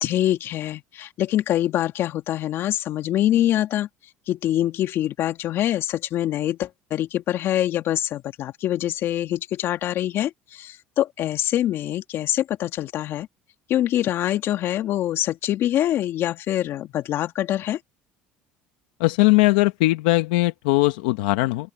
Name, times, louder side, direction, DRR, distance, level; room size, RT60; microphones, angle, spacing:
voice 1, 0.0-3.9 4.3-13.3 13.7-17.8, left 12 dB, 60° left, 2.0 m, -24 dB
voice 2, 19.0-21.7, left 21 dB, 85° left, 1.3 m, -19 dB
open air
supercardioid pair, 80°, 5 cm